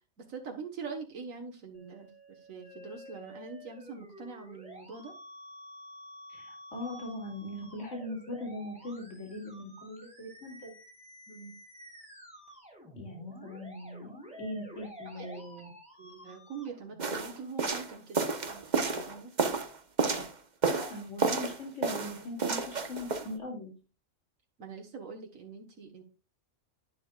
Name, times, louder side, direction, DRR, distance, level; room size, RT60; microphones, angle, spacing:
voice 1, 0.3-2.1 2.5-5.1 11.3-11.5 15.2-15.4 16.0-19.3 24.6-26.0, right 5 dB, 80° right, 2 dB, 1.9 m, -44 dB
Musical instrument, 1.7-17.7, equal, 5° right, 3.8 m, -51 dB
voice 2, 6.3-10.7 12.9-15.7 20.6-23.7, left 1 dB, 65° left, 1 dB, 3.2 m, -40 dB
sound 1, 17.0-20.3 20.6-21.6 21.8-23.3, right 4 dB, 35° right, 1.2 m, -30 dB
10.5 x 10.0 x 2.4 m, 0.31 s
omnidirectional pair, 1.4 m